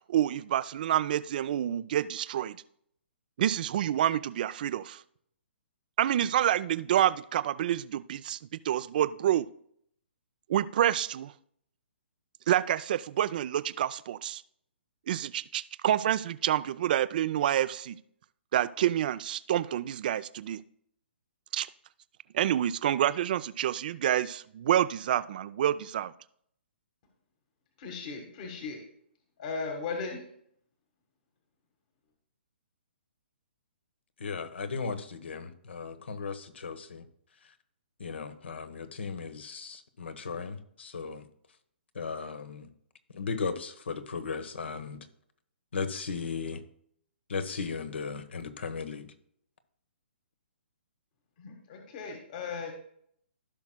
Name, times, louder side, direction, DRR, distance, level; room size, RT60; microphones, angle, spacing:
voice 1, 0.1-2.6 3.4-5.0 6.0-9.5 10.5-11.3 12.5-14.4 15.1-18.0 18.5-20.6 21.5-21.7 22.3-26.1, right 11 dB, 50° right, 0.4 m, -28 dB
voice 2, 27.8-28.8 29.4-30.2 51.4-52.7, left 4 dB, 45° left, 1.5 m, -37 dB
voice 3, 34.2-37.1 37.4-37.5 38.0-41.3 41.9-42.7 43.1-45.1 45.7-46.6 47.3-49.1, left 5 dB, 75° left, 1.1 m, -36 dB
15.5 x 6.0 x 2.2 m
hypercardioid pair, 135°, 6 cm